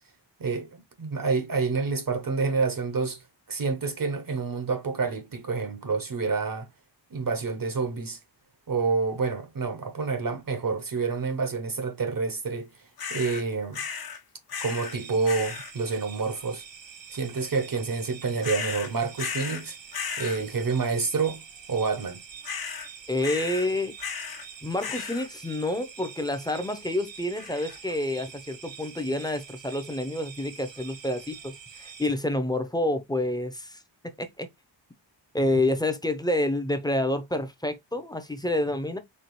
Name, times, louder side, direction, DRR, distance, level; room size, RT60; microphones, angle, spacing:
voice 1, 0.4-6.7 7.1-8.2 8.7-12.7 13.1-13.8 14.6-16.6 17.1-19.8 20.2-21.4 21.7-22.2, right 4 dB, 50° right, 0.8 m, -28 dB
sound 1, 13.0-13.4 13.7-14.2 14.5-15.0 15.2-15.7 18.4-19.6 19.9-20.4 22.4-22.9 23.2-23.7 24.0-24.5 24.8-25.3 27.4-27.8, left 6 dB, 55° left, 0.7 m, -35 dB
sound 2, 14.6-32.1, right 7 dB, 70° right, 1.2 m, -46 dB
voice 2, 23.1-23.9 24.6-33.8 34.2-34.5 35.3-39.0, left 1 dB, 10° left, 0.6 m, -28 dB
4.4 x 2.8 x 3.0 m
wide cardioid pair, 145°, 45 cm